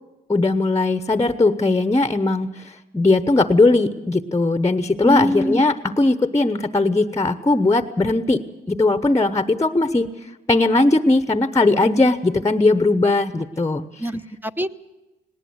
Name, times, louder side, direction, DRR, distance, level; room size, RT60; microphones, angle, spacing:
voice 1, 0.3-8.4 8.7-10.1 10.5-13.8, left 2 dB, 15° left, 12 dB, 1.0 m, -19 dB
voice 2, 5.0-5.6 14.0-14.7, equal, 10° right, 11 dB, 0.9 m, -23 dB
19.5 x 18.5 x 7.9 m, 1.1 s
cardioid pair, 90°, 20 cm